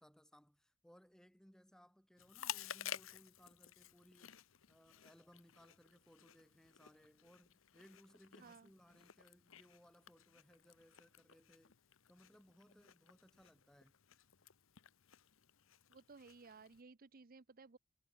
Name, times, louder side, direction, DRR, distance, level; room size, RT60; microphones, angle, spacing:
voice 1, 0.0-4.3 4.7-11.8 12.1-13.9, equal, 5° left, 1.2 m, -65 dB
Chewing mastication, 2.2-16.8, left 10 dB, 65° left, 0.9 m, -53 dB
voice 2, 15.9-17.8, right 4 dB, 40° right, 0.7 m, -58 dB
head